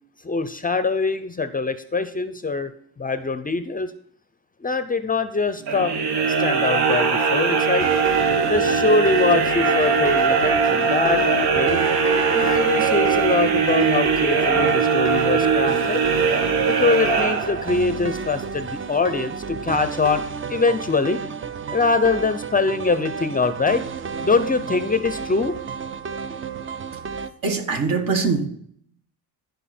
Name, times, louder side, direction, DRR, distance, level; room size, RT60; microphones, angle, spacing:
voice 1, 0.2-3.9 4.6-5.9 6.4-7.9 8.5-11.8 12.3-16.0 16.7-21.2 21.7-23.8 24.2-25.6, left 3 dB, 20° left, 11 dB, 0.5 m, -23 dB
sound 1, 5.6-17.9, right 5 dB, 80° right, 1.5 m, -20 dB
sound 2, 7.8-27.3, right 4 dB, 35° right, 0.5 m, -32 dB
voice 2, 27.4-28.5, right 4 dB, 60° right, 4 dB, 1.9 m, -22 dB
14.0 x 5.4 x 4.3 m, 0.62 s
cardioid pair, 115°, 38 cm